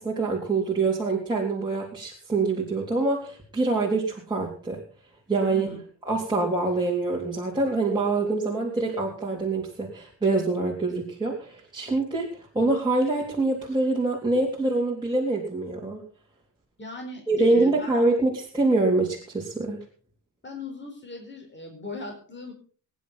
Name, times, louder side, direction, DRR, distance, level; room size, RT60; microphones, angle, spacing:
voice 1, 0.0-4.8 5.3-5.7 6.1-12.3 12.6-16.0 17.3-19.8, right 3 dB, 10° right, -4 dB, 3.5 m, -25 dB
voice 2, 16.8-18.0 20.4-22.5, left 2 dB, 25° left, 2 dB, 4.6 m, -39 dB
22.5 x 10.5 x 4.1 m, 0.43 s
wide cardioid pair, 165°, 44 cm